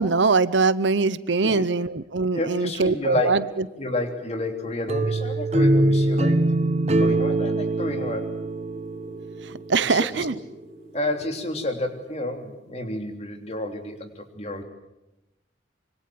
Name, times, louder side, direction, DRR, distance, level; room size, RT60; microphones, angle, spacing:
voice 1, 0.0-3.4 9.7-10.3, right 4 dB, 70° right, 16 dB, 0.9 m, -22 dB
voice 2, 1.4-1.8 2.3-3.4 3.8-6.4 7.0-8.3 9.7-10.4 10.9-14.6, left 1 dB, 35° left, 5 dB, 3.2 m, -30 dB
sound 1, 3.4-12.2, equal, 5° left, 4.6 m, -47 dB
sound 2, 4.9-9.8, right 1 dB, 35° right, 1.0 m, -23 dB
25.5 x 24.0 x 7.8 m, 0.94 s
head